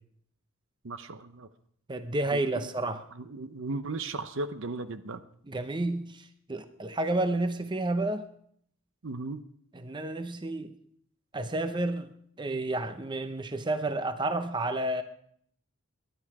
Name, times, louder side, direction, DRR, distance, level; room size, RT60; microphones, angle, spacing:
voice 1, 0.8-1.5 2.3-2.4 2.8-5.2 9.0-9.4, right 3 dB, 60° right, 12 dB, 0.7 m, -36 dB
voice 2, 1.9-3.0 5.5-8.3 9.7-10.7 11.3-12.1 12.4-15.0, right 2 dB, 20° right, 9 dB, 0.6 m, -30 dB
19.0 x 11.0 x 4.8 m, 0.67 s
head